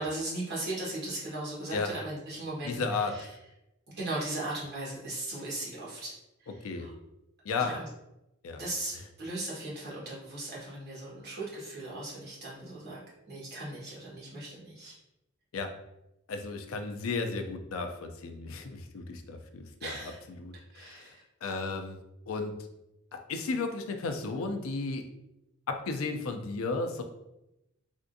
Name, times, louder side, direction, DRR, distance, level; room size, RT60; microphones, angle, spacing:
voice 1, 0.0-3.3 4.0-6.1 6.4-6.9 7.6-7.9 8.6-13.0 13.3-14.9 19.8-20.2 20.7-21.2, right 2 dB, 50° right, -7 dB, 1.4 m, -38 dB
voice 2, 2.6-3.3 6.6-6.9 7.4-7.8 8.4-8.6 15.5-15.7 16.3-19.9 20.4-21.1 21.4-22.0 22.3-22.6 23.1-25.0 25.7-27.0, left 4 dB, 75° left, 6 dB, 0.4 m, -34 dB
3.5 x 2.4 x 2.6 m, 0.90 s
head